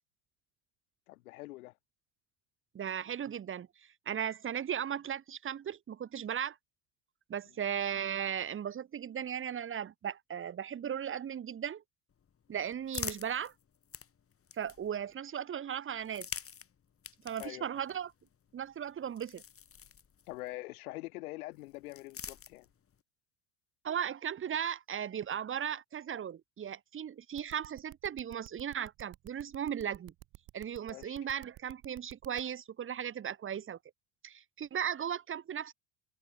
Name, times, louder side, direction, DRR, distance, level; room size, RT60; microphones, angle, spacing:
voice 1, 1.1-1.7 17.4-17.7 20.3-22.7 30.9-31.2, left 20 dB, 80° left, 1.8 m, -44 dB
voice 2, 2.7-6.6 7.3-11.8 12.5-13.5 14.5-16.3 17.2-18.1 18.5-19.4 23.8-30.1 30.5-33.8 34.2-35.7, right 9 dB, 30° right, 1.2 m, -37 dB
sound 1, 12.1-15.1 15.9-20.5 21.5-23.0, left 7 dB, 30° left, 3.0 m, -47 dB
sound 2, 27.4-32.4, right 16 dB, 55° right, 3.2 m, -52 dB
hypercardioid pair, 85°, 43 cm